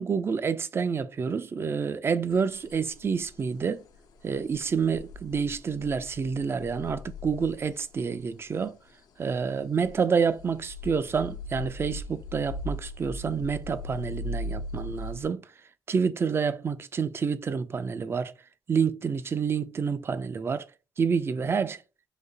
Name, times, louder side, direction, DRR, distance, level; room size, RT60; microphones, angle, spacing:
voice 1, 0.0-3.8 4.2-8.8 9.2-15.5 15.9-18.3 18.7-20.6 21.0-21.8, right 6 dB, 35° right, 0.5 m, -28 dB
sound 1, 2.3-8.2 8.6-9.0 9.4-9.5 9.8-10.0 10.3-15.2, left 1 dB, 70° left, 0.7 m, -39 dB
4.0 x 2.8 x 3.9 m
supercardioid pair, 75°, 7 cm